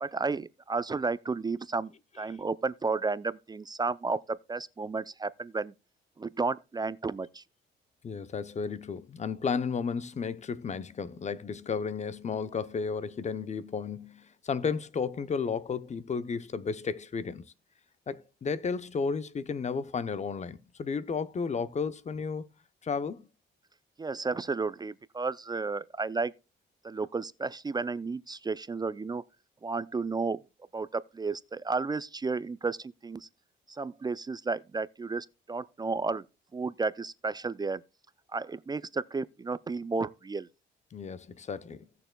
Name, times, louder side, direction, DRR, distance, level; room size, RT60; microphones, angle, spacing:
voice 1, 0.0-5.7 6.2-7.4 24.0-26.3 26.8-29.2 29.6-30.4 30.7-33.3 33.7-36.2 36.5-37.8 38.3-40.5, right 4 dB, 20° right, 0.4 m, -32 dB
voice 2, 8.0-17.5 18.1-22.5 22.8-23.3 40.9-41.9, left 5 dB, 35° left, 0.7 m, -33 dB
17.5 x 6.8 x 2.2 m
cardioid pair, 90°, 20 cm